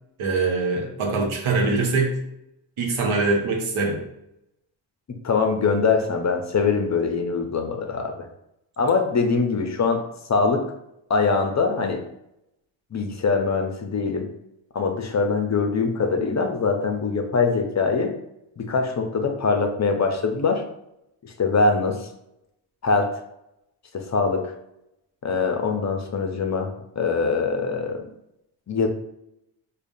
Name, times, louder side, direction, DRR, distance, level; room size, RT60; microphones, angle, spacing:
voice 1, 0.2-2.2 2.8-4.0, right 3 dB, 85° right, 0 dB, 1.0 m, -23 dB
voice 2, 5.2-8.3 8.8-10.7 11.1-12.0 12.9-14.3 14.7-18.2 18.6-20.6 21.2-22.1 22.8-23.1 23.9-24.5 25.2-28.1 28.7-28.9, left 4 dB, 40° left, 5 dB, 0.5 m, -23 dB
4.9 x 2.2 x 2.6 m, 0.82 s
cardioid pair, 85°, 47 cm